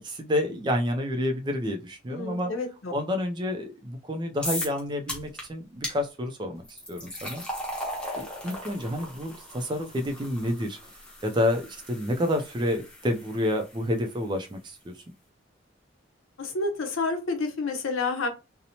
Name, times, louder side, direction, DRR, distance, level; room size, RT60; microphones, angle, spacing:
voice 1, 0.0-2.5 2.9-6.6 6.9-7.4 8.1-10.8 11.2-14.9, left 1 dB, 20° right, 0.3 m, -29 dB
voice 2, 2.1-2.9 16.4-18.3, left 3 dB, 90° left, 0.7 m, -29 dB
sound 1, 4.4-4.8 5.1-5.4 5.8-6.0 6.6-13.8, left 1 dB, 5° left, 0.7 m, -37 dB
2.8 x 2.0 x 2.7 m
head